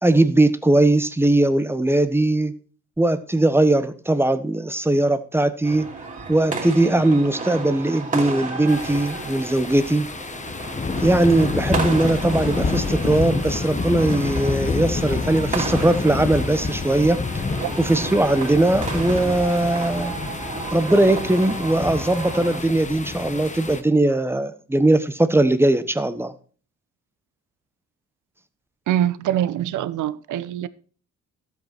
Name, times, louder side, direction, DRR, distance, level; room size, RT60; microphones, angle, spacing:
voice 1, 0.0-2.5 3.0-5.9 6.3-10.1 11.0-17.2 17.8-20.1 20.7-26.3, right 1 dB, 10° right, 1.1 m, -20 dB
sound 1, 5.6-22.6, right 3 dB, 25° right, 2.9 m, -32 dB
sound 2, 8.7-23.8, left 4 dB, 25° left, 1.1 m, -28 dB
voice 2, 28.9-30.7, right 11 dB, 75° right, 0.8 m, -24 dB
12.5 x 8.2 x 4.5 m
cardioid pair, 90°, 30 cm